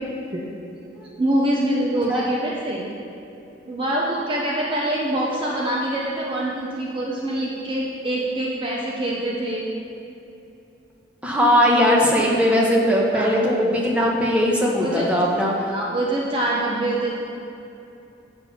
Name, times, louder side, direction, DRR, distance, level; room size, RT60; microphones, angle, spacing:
voice 1, 1.2-2.8 3.7-9.7 13.1-13.3 14.8-15.1 15.7-17.2, right 1 dB, 30° right, -4 dB, 0.8 m, -24 dB
voice 2, 11.2-15.5, equal, 5° right, -3 dB, 1.2 m, -19 dB
8.1 x 7.1 x 5.8 m, 2.8 s
head